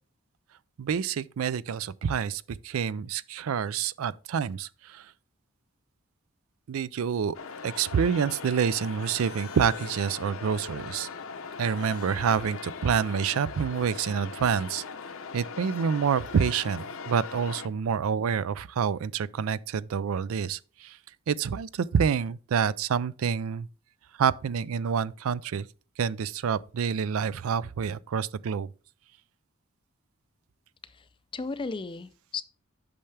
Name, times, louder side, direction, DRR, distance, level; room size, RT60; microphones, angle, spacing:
voice 1, 0.8-5.1 6.7-7.4 7.6-11.1 11.6-14.8 15.3-21.0 21.3-23.7 24.2-25.7 26.0-28.7, right 7 dB, 75° right, 0.4 m, -27 dB
sound 1, 7.3-17.7, left 5 dB, 70° left, 0.8 m, -40 dB
voice 2, 30.8-32.4, left 4 dB, 25° left, 0.4 m, -36 dB
8.6 x 5.7 x 3.3 m
head